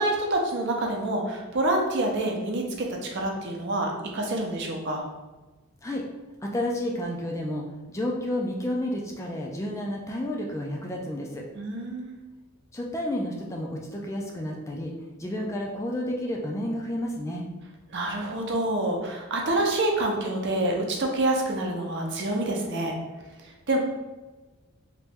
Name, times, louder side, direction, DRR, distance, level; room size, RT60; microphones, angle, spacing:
voice 1, 0.0-2.9 3.1-5.0 11.5-12.2 17.9-22.9 23.7-23.8, right 1 dB, 55° right, 1 dB, 0.6 m, -27 dB
voice 2, 6.4-11.5 12.7-14.9 15.2-17.4, left 1 dB, 15° left, -1 dB, 0.3 m, -31 dB
3.0 x 2.9 x 3.5 m, 1.2 s
head